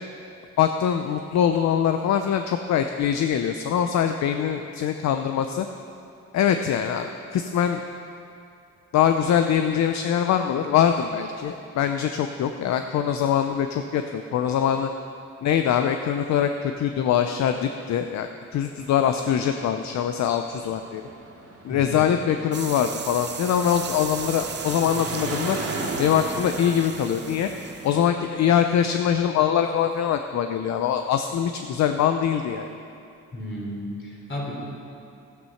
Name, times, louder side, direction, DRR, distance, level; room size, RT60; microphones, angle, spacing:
voice 1, 0.6-5.7 6.3-7.8 8.9-14.9 15.4-21.1 21.6-25.6 26.0-27.5 27.8-32.7, left 9 dB, 65° left, 7 dB, 0.6 m, -23 dB
sound 1, 18.6-28.0, right 2 dB, 50° right, 2.6 m, -37 dB
sound 2, 22.5-28.1, right 7 dB, 35° right, 0.7 m, -36 dB
voice 2, 33.3-34.6, equal, 40° left, -2 dB, 3.5 m, -33 dB
12.5 x 9.5 x 5.8 m, 2.6 s
cardioid pair, 90°, 30 cm